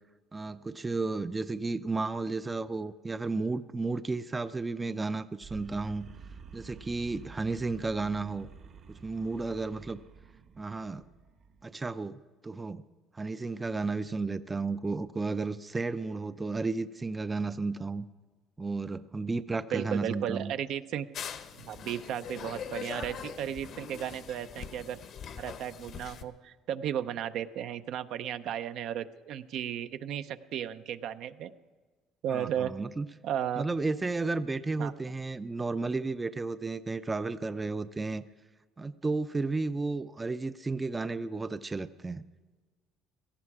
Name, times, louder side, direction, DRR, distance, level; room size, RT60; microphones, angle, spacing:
voice 1, 0.3-6.1 6.5-8.5 9.0-10.0 10.6-11.0 11.6-12.8 13.1-18.0 18.6-20.5 32.3-33.1 33.6-38.2 38.8-42.2, right 3 dB, 20° right, 13 dB, 0.5 m, -33 dB
sound 1, 5.4-11.7, right 6 dB, 50° right, 1.2 m, -50 dB
voice 2, 19.7-21.1 21.6-25.0 25.4-31.5 32.2-32.7 33.2-33.6 34.8-34.9, right 10 dB, 65° right, 10 dB, 0.6 m, -34 dB
sound 2, 21.1-26.2, left 7 dB, 55° left, 0.9 m, -42 dB
17.5 x 14.0 x 4.8 m, 1.4 s
cardioid pair, 110°, 0 cm